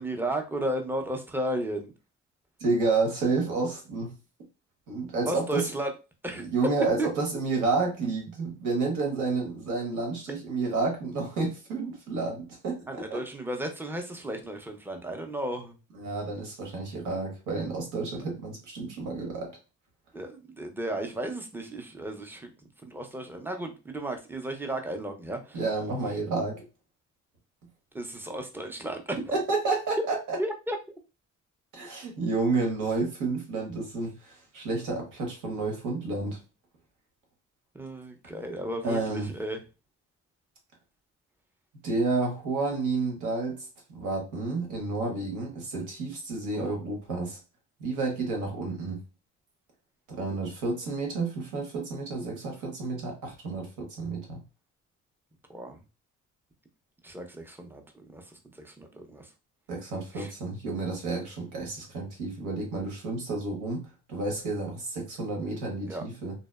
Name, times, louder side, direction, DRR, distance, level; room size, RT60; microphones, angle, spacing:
voice 1, 0.0-1.9 5.3-5.9 6.2-6.5 7.0-7.1 12.9-15.8 20.1-22.5 22.8-25.6 27.9-29.2 30.4-30.8 37.7-39.6 55.5-55.8 57.0-58.2 58.5-59.3 60.1-60.3 65.8-66.0, right 1 dB, 5° right, 5 dB, 0.4 m, -34 dB
voice 2, 2.6-4.1 4.9-5.7 6.4-13.2 15.9-19.5 25.5-26.6 29.3-30.4 31.7-36.4 38.8-39.3 41.8-43.6 43.9-47.4 47.8-49.0 50.1-54.4 59.7-66.3, right 3 dB, 85° right, 1 dB, 1.0 m, -30 dB
2.7 x 2.0 x 2.2 m, 0.30 s
cardioid pair, 90°, 30 cm